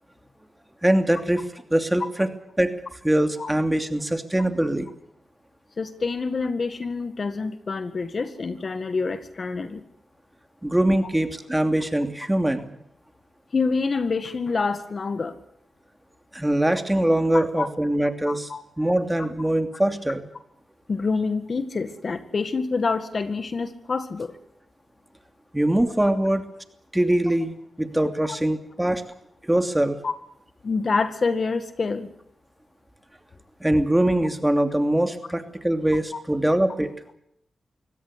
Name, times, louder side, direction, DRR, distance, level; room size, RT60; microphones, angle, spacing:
voice 1, 0.8-2.3 2.6-2.7 3.0-4.9 10.6-12.7 16.3-18.5 18.8-20.3 25.5-26.4 26.9-29.0 29.4-30.0 33.6-36.9, right 1 dB, 10° right, 7 dB, 2.8 m, -22 dB
voice 2, 5.8-9.8 13.5-15.4 17.3-17.7 18.2-18.6 20.9-24.4 30.0-30.1 30.6-32.1 36.1-36.2, left 4 dB, 55° left, 10 dB, 1.9 m, -27 dB
24.5 x 17.0 x 8.3 m, 0.73 s
cardioid pair, 55°, 0 cm